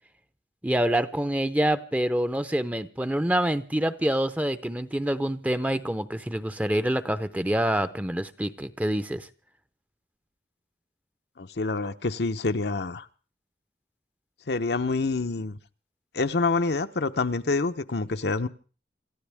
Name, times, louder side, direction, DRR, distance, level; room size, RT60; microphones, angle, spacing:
voice 1, 0.6-9.3, right 1 dB, 10° right, 0.7 m, -26 dB
voice 2, 11.4-13.1 14.5-15.6 16.1-18.5, left 3 dB, 70° left, 0.8 m, -27 dB
27.0 x 14.0 x 3.5 m
head